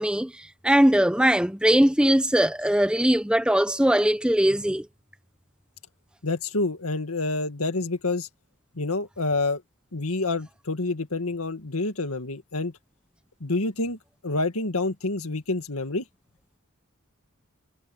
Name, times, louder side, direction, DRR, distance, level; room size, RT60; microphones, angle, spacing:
voice 1, 0.0-4.9, equal, 5° right, 0.7 m, -21 dB
voice 2, 6.2-8.3 8.7-9.6 9.9-12.7 13.4-16.1, left 2 dB, 90° left, 2.0 m, -28 dB
head